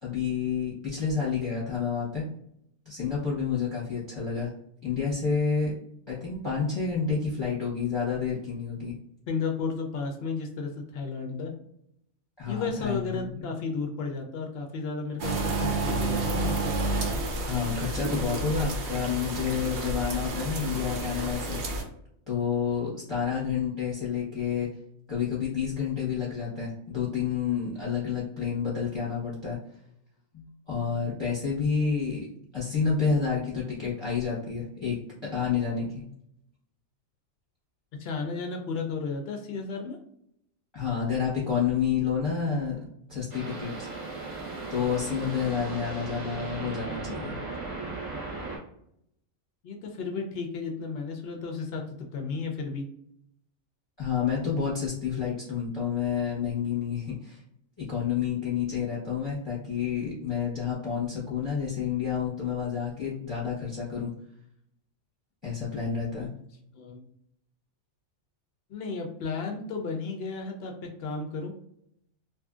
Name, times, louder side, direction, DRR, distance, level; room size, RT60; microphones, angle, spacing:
voice 1, 0.0-2.2 2.8-4.5 4.8-5.7 6.1-8.9 12.4-13.4 17.4-21.6 22.3-24.7 25.1-29.6 30.3-32.3 32.5-36.0 40.7-42.8 43.1-43.9 44.7-47.4 54.0-57.4 57.8-64.1 65.4-66.3, left 6 dB, 25° left, -6 dB, 0.7 m, -29 dB
voice 2, 9.3-11.5 12.5-16.7 38.0-40.0 49.6-51.8 52.1-52.9 66.2-66.3 66.7-67.1 68.7-71.5, left 4 dB, 65° left, 2 dB, 0.6 m, -33 dB
sound 1, 15.2-21.8, right 2 dB, 65° right, 0.8 m, -30 dB
sound 2, 43.3-48.6, right 3 dB, 35° right, 0.9 m, -37 dB
2.7 x 2.5 x 2.3 m, 0.74 s
omnidirectional pair, 1.4 m